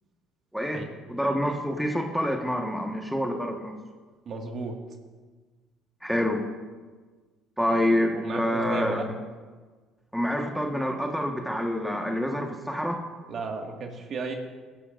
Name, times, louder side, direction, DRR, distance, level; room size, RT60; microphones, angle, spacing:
voice 1, 1.1-3.7 6.0-6.4 7.6-9.0 10.1-13.0, equal, ahead, 2 dB, 1.4 m, -27 dB
voice 2, 4.3-4.8 8.1-9.1 13.3-14.3, right 4 dB, 50° right, 2 dB, 1.9 m, -34 dB
20.5 x 12.0 x 2.6 m, 1.4 s
supercardioid pair, 80°, 0 cm